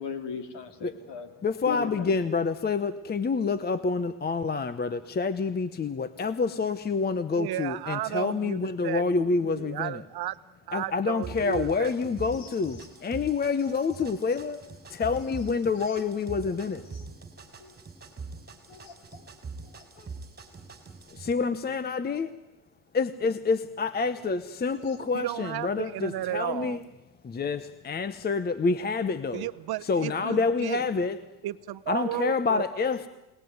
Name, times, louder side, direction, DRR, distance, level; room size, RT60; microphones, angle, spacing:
voice 1, 0.0-1.3 1.7-2.1 17.6-17.7 18.7-19.2 19.7-20.1, left 6 dB, 55° left, 8 dB, 3.7 m, -38 dB
voice 2, 1.4-10.0 10.7-14.6 14.9-16.8 21.1-22.3 22.9-26.8 27.2-29.5 29.8-31.2 31.9-33.1, left 4 dB, 20° left, 14 dB, 0.9 m, -28 dB
voice 3, 7.3-9.0 9.5-10.3 10.7-11.9 25.1-26.8 29.3-30.8 31.4-32.6, right 15 dB, 50° right, 13 dB, 0.9 m, -33 dB
sound 1, 11.2-21.3, right 4 dB, 20° right, 4.2 m, -43 dB
29.5 x 19.0 x 9.5 m, 0.96 s
cardioid pair, 120°, 48 cm